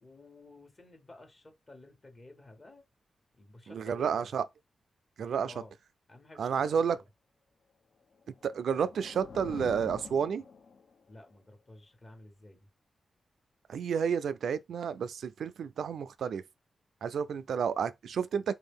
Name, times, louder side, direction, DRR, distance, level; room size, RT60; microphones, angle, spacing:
voice 1, 0.0-2.8 3.3-4.3 5.4-5.7 6.1-7.1 11.1-12.7, left 2 dB, 40° left, 1.2 m, -53 dB
voice 2, 3.7-4.4 5.2-5.5 6.4-7.0 8.4-10.4 13.7-16.4 17.0-18.6, right 7 dB, 80° right, 0.3 m, -31 dB
sound 1, 8.2-11.1, left 5 dB, 70° left, 0.6 m, -46 dB
3.4 x 2.6 x 3.5 m
cardioid pair, 65°, 0 cm